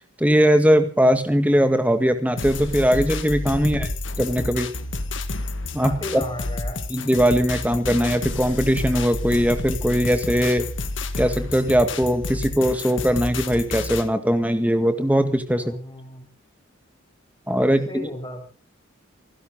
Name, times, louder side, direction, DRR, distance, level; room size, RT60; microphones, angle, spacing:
voice 1, 0.2-3.9 4.2-4.7 5.7-6.2 6.9-10.6 11.2-15.7 17.5-18.1, equal, 5° right, 8 dB, 1.9 m, -20 dB
sound 1, 2.4-14.1, left 2 dB, 65° left, 1.7 m, -30 dB
voice 2, 3.6-3.9 5.8-6.8 15.5-16.3 17.9-18.4, left 1 dB, 20° left, 1 dB, 7.3 m, -35 dB
28.5 x 11.5 x 3.8 m, 0.39 s
head